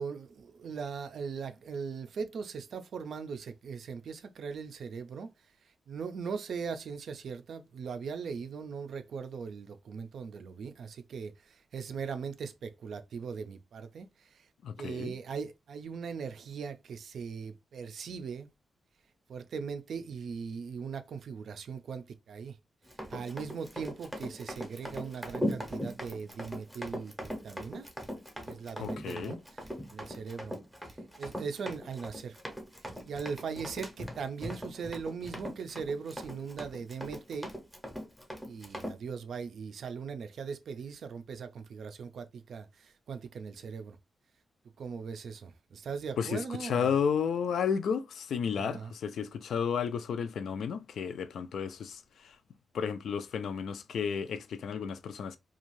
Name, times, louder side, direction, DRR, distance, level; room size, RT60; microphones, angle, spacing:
voice 1, 0.0-5.3 5.9-14.5 14.8-18.5 19.3-22.6 23.1-27.9 28.5-29.4 29.9-30.5 31.2-32.4 33.0-37.5 38.4-44.0 44.8-46.9 48.5-48.9, right 5 dB, 65° right, 0.4 m, -39 dB
voice 2, 14.6-15.1 28.8-29.4 46.2-52.4 52.7-55.4, left 7 dB, 80° left, 0.3 m, -32 dB
Run, 22.9-39.0, equal, ahead, 0.6 m, -40 dB
2.6 x 2.3 x 3.0 m
wide cardioid pair, 175°, 0 cm